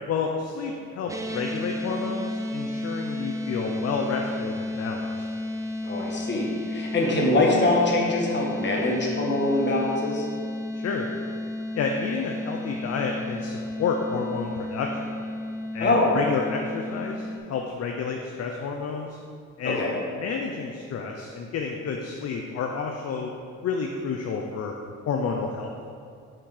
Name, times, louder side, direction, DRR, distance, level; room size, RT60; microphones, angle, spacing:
voice 1, 0.1-5.1 10.8-11.1 11.8-15.1 15.7-19.2 19.6-19.8 20.2-23.3 23.6-24.7 25.1-25.7, left 5 dB, 55° left, 2 dB, 0.6 m, -30 dB
sound 1, 1.1-17.4, left 1 dB, 10° right, 0.5 m, -33 dB
voice 2, 5.8-10.3 15.8-16.1 19.6-20.0, left 2 dB, 35° left, -2 dB, 1.5 m, -23 dB
5.9 x 4.4 x 4.9 m, 2.3 s
cardioid pair, 90°, 30 cm